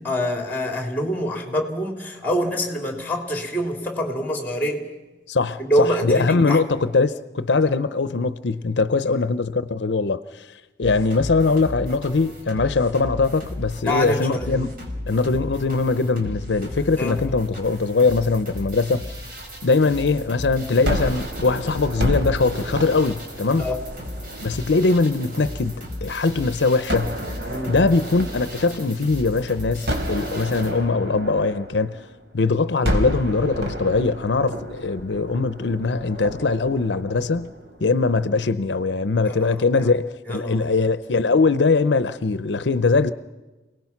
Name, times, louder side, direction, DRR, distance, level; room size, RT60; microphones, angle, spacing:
voice 1, 0.0-4.8 5.6-6.6 9.0-9.2 13.8-14.7 17.0-17.2 23.6-23.8 27.5-27.8 39.2-39.9 40.3-40.9, equal, 10° left, 3.3 m, -25 dB
voice 2, 5.3-10.5 10.8-14.7 15.1-19.1 19.6-23.7 24.4-27.2 27.7-32.0 32.3-37.5 37.8-43.1, left 3 dB, 80° left, 0.7 m, -21 dB
sound 1, 10.8-30.7, left 1 dB, 55° right, 5.0 m, -35 dB
Gunshot gunfire, 20.9-26.0 26.9-29.3 29.9-32.3 32.8-38.1, equal, 85° right, 3.5 m, -31 dB
28.0 x 18.5 x 6.0 m
head